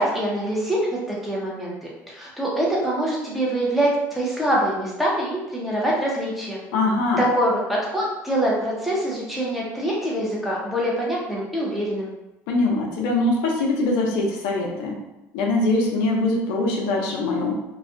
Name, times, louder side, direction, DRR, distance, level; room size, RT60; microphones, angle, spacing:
voice 1, 0.0-6.6 7.2-12.1 16.0-16.1, right 1 dB, ahead, -5 dB, 0.8 m, -24 dB
voice 2, 6.7-7.2 12.5-15.0 15.3-17.5, left 2 dB, 80° left, -1 dB, 0.5 m, -22 dB
2.4 x 2.3 x 2.5 m, 0.97 s
supercardioid pair, 95°, 7 cm